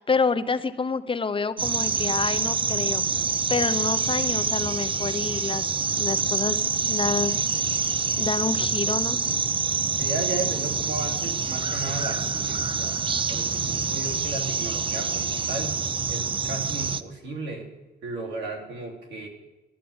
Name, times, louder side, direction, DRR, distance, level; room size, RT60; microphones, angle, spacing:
voice 1, 0.0-3.0 3.5-5.6 6.0-6.6 6.9-7.9 8.2-9.2, left 5 dB, 30° left, 12 dB, 0.7 m, -28 dB
sound 1, 1.6-17.0, right 5 dB, 30° right, 0.6 m, -26 dB
voice 2, 10.0-13.0 13.3-15.8 16.1-17.7 18.0-19.3, right 2 dB, 85° right, 1 dB, 3.1 m, -34 dB
13.5 x 11.5 x 8.7 m, 1.1 s
cardioid pair, 115°, 18 cm